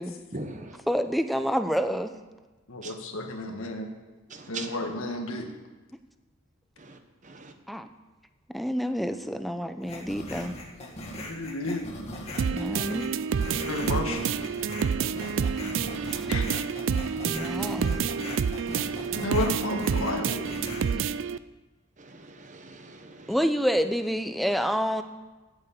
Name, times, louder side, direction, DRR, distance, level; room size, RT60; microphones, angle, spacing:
voice 1, 0.3-0.7 2.8-2.9 4.4-4.7 7.3-7.5 18.8-19.3 22.5-23.2, right 3 dB, 35° right, 7 dB, 1.0 m, -40 dB
voice 2, 0.9-2.1 7.7-7.9 8.5-10.6 12.4-13.1 16.1-16.3 17.2-18.0 20.9-21.0 23.3-25.0, equal, ahead, 9 dB, 0.5 m, -28 dB
voice 3, 2.7-3.9 4.5-5.5 11.2-11.9 13.7-14.2 16.3-16.4 19.2-20.4, left 2 dB, 75° left, 4 dB, 1.6 m, -31 dB
sound 1, 9.8-20.9, left 1 dB, 30° left, 1.7 m, -39 dB
sound 2, 12.4-21.4, right 6 dB, 60° right, 0.3 m, -28 dB
9.3 x 8.7 x 8.3 m, 1.2 s
head